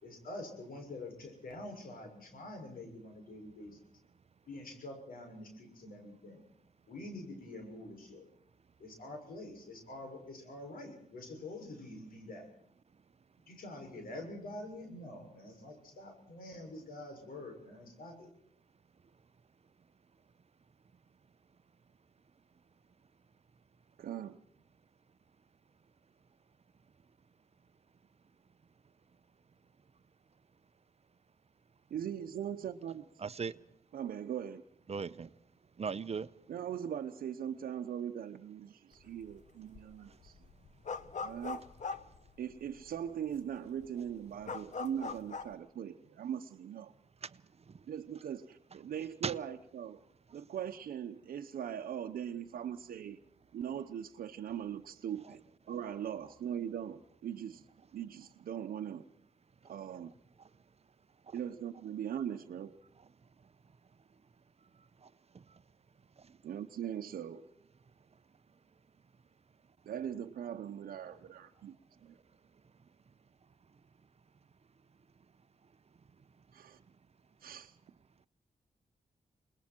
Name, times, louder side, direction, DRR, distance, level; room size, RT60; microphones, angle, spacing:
voice 1, 0.0-3.8 4.5-6.4 6.9-8.2 8.8-12.4 13.5-18.3, left 2 dB, 80° left, 6.5 m, -46 dB
voice 2, 24.0-24.4 31.9-33.2 33.9-34.6 35.1-35.3 36.5-40.4 41.2-41.6 42.4-46.9 47.9-50.0 50.3-53.2 53.5-55.4 55.7-57.6 57.9-59.0 59.7-60.1 61.3-62.8 66.4-67.5 69.9-71.8 72.0-72.2 76.5-76.8 77.4-77.8, right 9 dB, 90° right, 0.9 m, -40 dB
voice 3, 33.2-33.6 34.9-35.3 35.8-36.3 49.2-49.3, right 5 dB, 45° right, 0.8 m, -36 dB
sound 1, 39.0-39.4 39.7-42.9 43.3-43.4 43.7-45.5, left 5 dB, 55° left, 1.2 m, -41 dB
28.5 x 20.5 x 4.5 m
cardioid pair, 65°, 15 cm